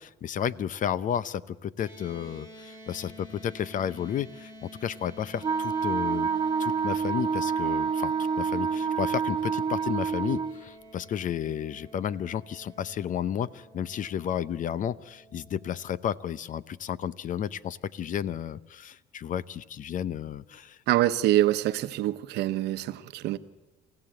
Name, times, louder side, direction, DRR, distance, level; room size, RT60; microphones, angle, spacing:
voice 1, 0.0-6.3 6.6-20.8, left 9 dB, 50° left, 0.7 m, -32 dB
sound 1, 1.8-16.2, equal, 25° left, 7.2 m, -50 dB
Wind instrument woodwind instrument, 5.4-10.6, right 6 dB, 30° right, 1.1 m, -28 dB
voice 2, 20.9-23.4, right 14 dB, 85° right, 1.0 m, -25 dB
28.0 x 16.0 x 7.8 m
cardioid pair, 110°, 17 cm